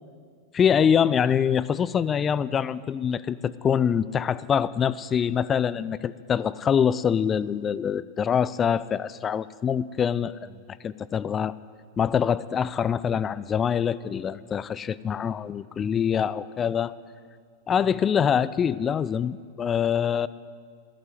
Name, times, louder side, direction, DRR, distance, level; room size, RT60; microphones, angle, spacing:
voice 1, 0.5-11.5 12.0-17.0 17.7-20.3, left 8 dB, 25° left, 17 dB, 0.4 m, -24 dB
12.5 x 11.0 x 9.4 m, 2.1 s
figure-of-eight pair, 90°, 0 cm